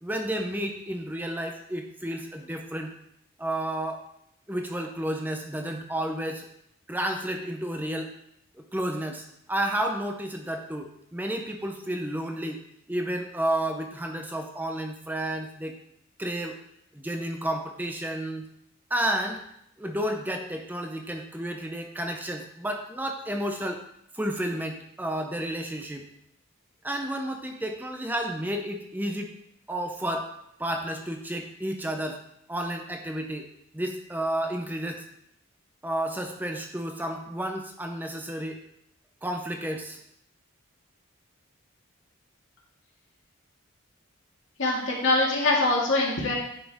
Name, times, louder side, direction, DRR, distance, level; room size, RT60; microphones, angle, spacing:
voice 1, 0.0-2.9 3.4-4.0 4.5-6.5 6.9-8.1 8.5-12.6 12.9-15.8 16.2-16.6 16.9-18.5 18.9-19.4 19.8-23.8 24.1-26.0 26.8-29.3 29.7-30.3 30.6-32.2 32.5-33.5 33.7-35.0 35.8-38.6 39.2-40.0, right 1 dB, 10° right, 4 dB, 0.7 m, -31 dB
voice 2, 44.6-46.3, left 2 dB, 60° left, -4 dB, 2.0 m, -23 dB
9.9 x 5.9 x 3.5 m, 0.75 s
head